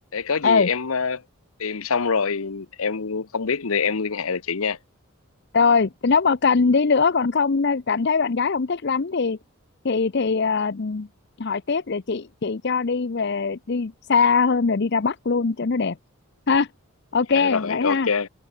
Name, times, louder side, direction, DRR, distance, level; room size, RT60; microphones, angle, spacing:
voice 1, 0.1-1.2 1.6-4.8 17.3-18.3, left 5 dB, 70° left, 0.9 m, -25 dB
voice 2, 5.5-9.4 9.8-11.1 11.4-16.0 16.5-16.7 17.1-18.1, left 5 dB, 50° left, 0.6 m, -21 dB
head